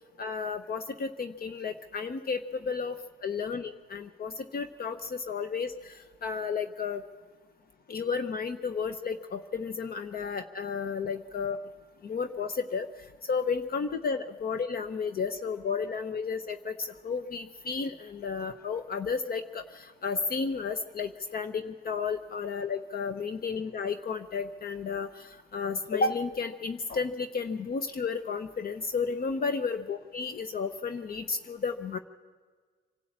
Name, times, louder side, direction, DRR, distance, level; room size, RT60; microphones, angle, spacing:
voice 1, 0.2-7.0 7.9-11.6 12.0-12.9 13.3-32.0, left 5 dB, 50° left, 9 dB, 0.8 m, -32 dB
25.5 x 12.5 x 8.7 m, 1.5 s
cardioid pair, 90°, 20 cm